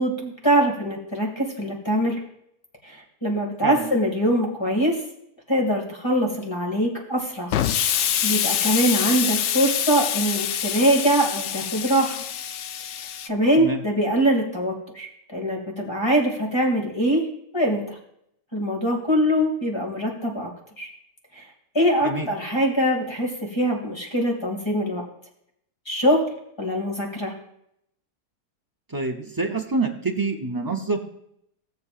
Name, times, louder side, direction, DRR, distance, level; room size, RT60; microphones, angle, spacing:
voice 1, 0.0-2.2 2.8-5.0 5.5-7.5 8.2-12.2 13.0-17.2 17.5-18.0 18.5-20.5 20.8-20.9 21.3-21.4 21.7-25.0 25.9-26.2 26.6-27.3, right 1 dB, 15° left, -1 dB, 2.3 m, -23 dB
Explosion, 7.5-13.3, left 9 dB, 80° left, 0.6 m, -25 dB
voice 2, 28.9-31.0, right 3 dB, 25° right, 2 dB, 0.4 m, -26 dB
16.5 x 7.7 x 2.5 m, 0.74 s
omnidirectional pair, 1.8 m